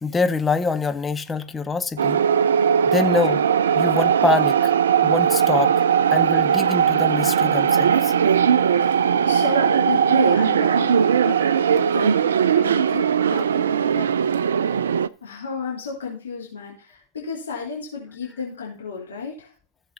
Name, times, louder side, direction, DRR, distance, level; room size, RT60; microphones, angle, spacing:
voice 1, 0.0-2.2 2.9-3.4 3.8-4.7 5.0-8.1, left 4 dB, 15° left, 0.6 m, -25 dB
sound 1, 2.0-15.1, right 8 dB, 65° right, 0.4 m, -19 dB
voice 2, 8.9-11.4 11.9-14.9 15.2-19.5, left 5 dB, 70° left, 3.1 m, -33 dB
15.0 x 7.3 x 2.9 m
figure-of-eight pair, 90°, 0 cm